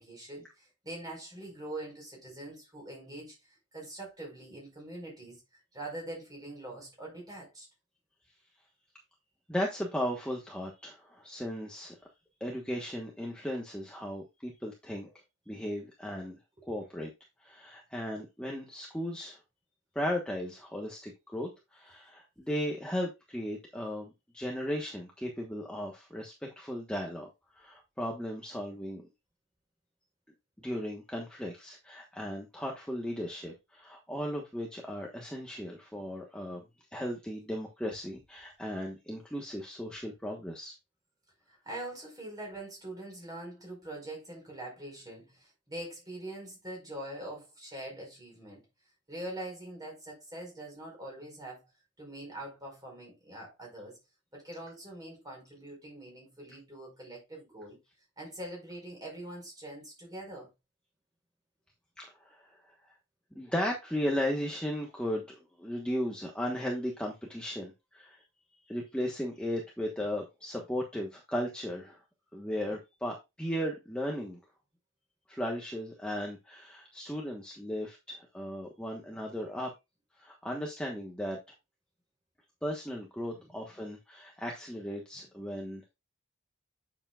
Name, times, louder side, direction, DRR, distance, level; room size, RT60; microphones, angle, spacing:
voice 1, 0.0-5.4 5.7-7.7 16.7-16.8 41.5-48.6 49.1-51.6 52.0-54.0 54.3-57.8 58.2-60.5 83.3-83.5, right 1 dB, 20° right, 5.0 m, -43 dB
voice 2, 9.5-12.0 12.4-15.1 15.5-16.4 16.6-17.1 17.4-19.4 19.9-29.1 30.6-36.6 36.9-40.7 62.0-62.8 63.3-68.2 68.6-72.0 72.3-74.4 75.3-79.7 80.2-81.4 82.6-85.9, equal, 5° left, 1.2 m, -36 dB
8.6 x 7.1 x 2.4 m
head